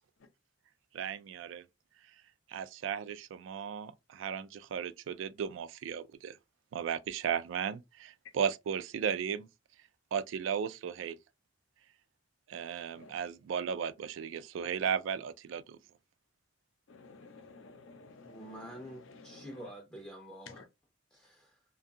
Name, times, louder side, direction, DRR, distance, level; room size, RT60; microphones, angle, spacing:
voice 1, 0.9-1.6 2.5-6.4 6.7-9.5 10.1-11.2 12.5-15.8, right 7 dB, 75° right, 0.3 m, -35 dB
voice 2, 16.9-19.7 20.5-20.7, left 4 dB, 85° left, 0.6 m, -53 dB
voice 3, 18.2-20.6 21.1-21.6, right 1 dB, 5° left, 0.4 m, -48 dB
2.6 x 2.3 x 2.5 m
head